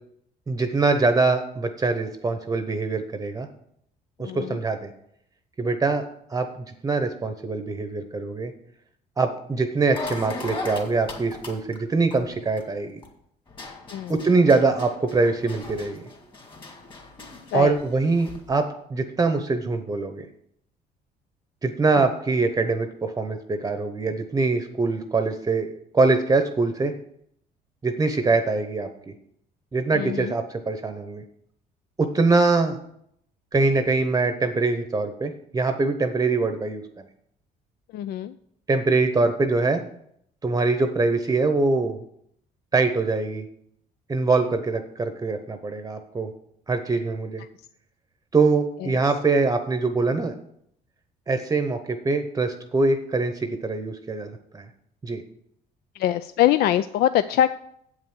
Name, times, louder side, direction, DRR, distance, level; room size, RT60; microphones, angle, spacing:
voice 1, 0.5-3.5 4.2-4.9 5.6-6.0 6.3-8.5 9.2-13.0 14.1-16.0 17.5-20.3 21.6-25.7 25.9-26.9 27.8-29.1 29.7-31.2 32.0-32.8 33.5-36.8 38.7-39.8 40.4-42.0 42.7-43.4 44.1-46.3 46.7-47.4 48.3-50.3 51.3-54.7 55.0-55.2, right 3 dB, 20° right, 8 dB, 0.8 m, -23 dB
voice 2, 4.2-4.6 13.9-14.1 17.5-17.8 22.0-22.1 29.9-30.3 37.9-38.3 48.8-48.9 56.0-57.5, left 12 dB, 70° left, 13 dB, 0.4 m, -23 dB
sound 1, 9.9-13.1 13.5-18.5, left 2 dB, 30° left, 2.5 m, -38 dB
8.0 x 5.6 x 7.8 m, 0.71 s
cardioid pair, 110°, 17 cm